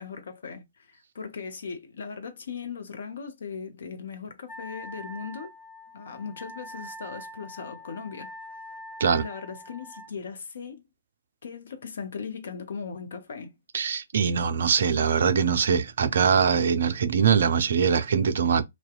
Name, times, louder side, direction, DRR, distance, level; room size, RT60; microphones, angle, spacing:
voice 1, 0.0-5.5 5.9-8.3 9.2-10.8 11.4-13.5 14.5-14.7, left 6 dB, 60° left, 0.6 m, -38 dB
Wind instrument woodwind instrument, 4.5-10.1, equal, 10° left, 0.6 m, -43 dB
voice 2, 13.7-18.6, right 6 dB, 60° right, 0.3 m, -22 dB
2.6 x 2.2 x 2.2 m
figure-of-eight pair, 120°, 0 cm